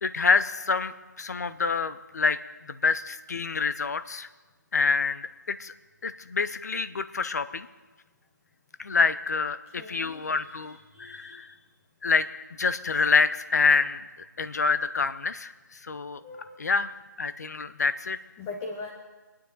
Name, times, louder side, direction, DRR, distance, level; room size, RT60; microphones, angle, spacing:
voice 1, 0.0-2.4 2.7-4.3 4.7-5.7 6.0-7.7 8.8-11.5 12.0-12.3 12.6-14.0 14.4-15.5 15.8-16.2 16.6-16.9 17.2-18.2, left 4 dB, 55° left, 13 dB, 0.8 m, -26 dB
voice 2, 9.8-10.5 10.9-11.5 16.2-16.6 18.4-18.9, left 3 dB, 15° left, 1 dB, 0.9 m, -40 dB
25.0 x 9.8 x 4.0 m, 1.2 s
figure-of-eight pair, 160°, 10 cm